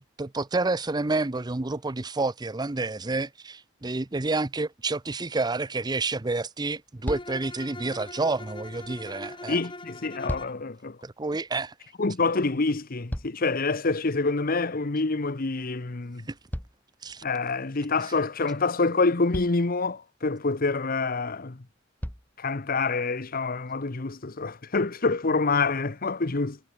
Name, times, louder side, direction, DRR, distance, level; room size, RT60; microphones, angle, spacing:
voice 1, 0.0-9.6 11.0-11.7 16.3-16.4 17.0-17.2, right 3 dB, 20° right, 0.6 m, -29 dB
sound 1, 7.0-7.5 9.9-10.8 12.6-13.7 16.5-17.5 18.7-18.8 19.3-19.8 21.2-21.3 22.0-22.4 23.2-23.3, equal, 10° left, 1.6 m, -37 dB
Bowed string instrument, 7.1-10.6, left 2 dB, 25° left, 5.1 m, -41 dB
voice 2, 9.5-11.0 12.0-16.3 17.2-21.6 22.4-26.6, left 3 dB, 50° left, 1.0 m, -27 dB
head